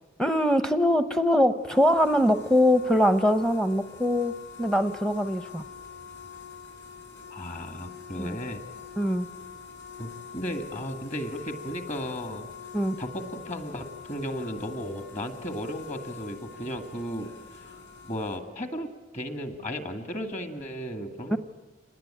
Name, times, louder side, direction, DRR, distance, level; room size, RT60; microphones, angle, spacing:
voice 1, 0.2-5.6 8.2-8.4 9.0-9.3 12.7-13.0 21.3-21.4, equal, 5° left, 11 dB, 0.7 m, -23 dB
sound 1, 1.5-18.4, left 6 dB, 60° left, 5.6 m, -45 dB
voice 2, 7.3-8.6 10.0-12.5 13.0-17.7 18.0-21.4, equal, 35° left, 7 dB, 2.0 m, -35 dB
26.0 x 20.0 x 9.0 m, 1.2 s
head